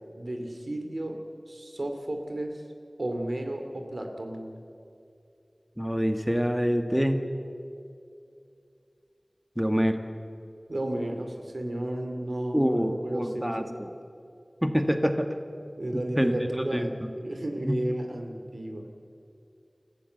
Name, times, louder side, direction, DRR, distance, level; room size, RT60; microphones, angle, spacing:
voice 1, 0.2-1.2 1.5-2.6 3.0-4.6 10.7-13.8 15.8-16.9 17.2-18.9, right 1 dB, 80° right, 4 dB, 2.5 m, -33 dB
voice 2, 5.8-7.2 9.6-10.0 12.5-13.9 14.6-15.3 16.2-17.1 17.6-17.8, equal, 5° right, 6 dB, 1.5 m, -26 dB
28.0 x 15.0 x 8.0 m, 2.5 s
wide cardioid pair, 45°, 0 cm